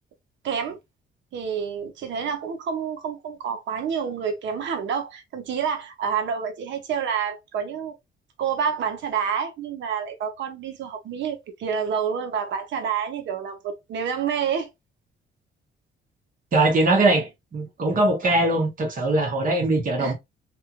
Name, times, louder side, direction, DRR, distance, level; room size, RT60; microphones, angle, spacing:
voice 1, 0.4-0.8 1.3-7.9 8.4-14.7 20.0-20.1, right 7 dB, 70° right, 0.7 m, -28 dB
voice 2, 16.5-20.1, right 2 dB, 45° right, 1.1 m, -21 dB
3.0 x 2.5 x 2.4 m
cardioid pair, 90°, 20 cm